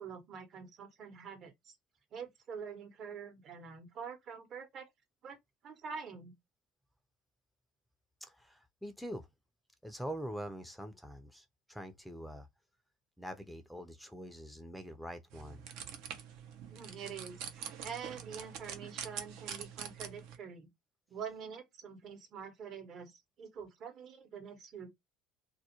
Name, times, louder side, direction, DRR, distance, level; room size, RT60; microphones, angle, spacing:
voice 1, 0.0-1.7 2.1-4.9 5.2-5.4 5.6-6.3 16.7-20.7 21.1-24.9, right 6 dB, 50° right, 0.9 m, -46 dB
voice 2, 8.2-9.3 9.8-12.5 13.2-15.6, equal, ahead, 0.5 m, -44 dB
sound 1, 15.3-20.4, right 8 dB, 70° right, 0.6 m, -45 dB
2.3 x 2.1 x 2.8 m
hypercardioid pair, 75°, 0 cm